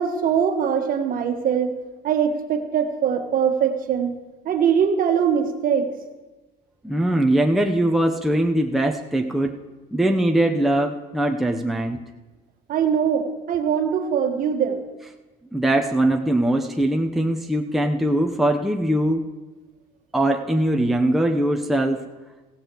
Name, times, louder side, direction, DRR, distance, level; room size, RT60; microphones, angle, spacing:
voice 1, 0.0-1.7 2.0-4.2 4.4-5.9 12.7-14.8, right 7 dB, 50° right, 5 dB, 1.5 m, -22 dB
voice 2, 6.8-9.6 9.9-12.0 15.5-19.2 20.1-22.1, right 1 dB, ahead, 1 dB, 0.9 m, -21 dB
16.0 x 14.5 x 3.1 m, 1.2 s
supercardioid pair, 95°, 18 cm